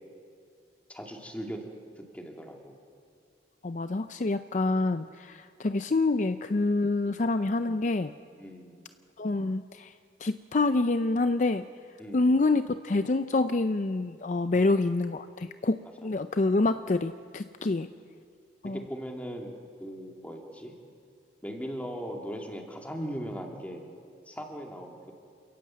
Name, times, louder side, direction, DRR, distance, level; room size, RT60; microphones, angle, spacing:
voice 1, 0.9-1.6 2.0-2.7 7.0-7.2 8.4-8.8 12.0-12.3 14.5-14.6 17.6-17.8 18.7-19.5 19.8-20.7 21.4-23.8 24.3-25.1, equal, 10° left, 1 dB, 2.5 m, -39 dB
voice 2, 3.6-8.1 9.2-9.9 10.2-11.6 12.1-17.9 18.6-18.8, left 2 dB, 45° left, 10 dB, 0.5 m, -27 dB
28.0 x 18.0 x 7.6 m, 2.3 s
head